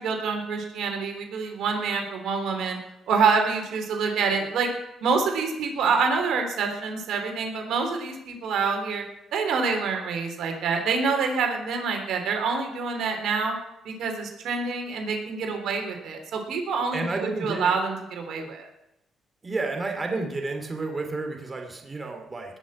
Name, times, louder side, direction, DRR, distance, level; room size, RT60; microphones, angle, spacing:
voice 1, 0.0-2.8 3.1-4.7 5.0-9.0 9.3-13.6 13.8-18.7 20.1-20.2, right 5 dB, 75° right, 4 dB, 3.4 m, -26 dB
voice 2, 16.9-17.8 19.4-22.6, right 3 dB, 25° right, 3 dB, 2.7 m, -31 dB
19.5 x 6.6 x 7.6 m, 0.85 s
cardioid pair, 90°, 0 cm